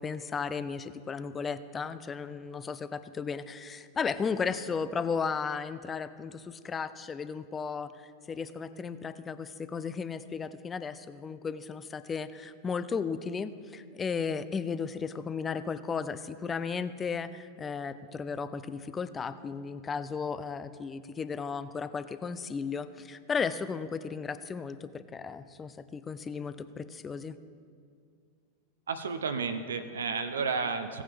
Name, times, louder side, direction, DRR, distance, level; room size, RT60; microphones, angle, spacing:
voice 1, 0.0-27.4, left 5 dB, 20° left, 13 dB, 0.4 m, -35 dB
voice 2, 28.9-31.0, right 5 dB, 70° right, 9 dB, 0.6 m, -32 dB
17.0 x 8.7 x 3.4 m, 2.2 s
figure-of-eight pair, 90°, 0 cm